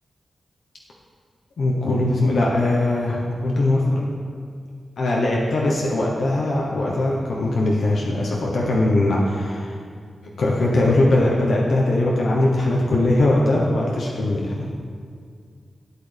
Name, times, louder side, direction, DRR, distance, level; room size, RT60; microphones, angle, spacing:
voice 1, 1.6-4.0 5.0-9.8 10.4-14.7, left 2 dB, 75° left, -3 dB, 1.1 m, -20 dB
12.5 x 8.6 x 3.5 m, 2.1 s
wide cardioid pair, 145°, 0 cm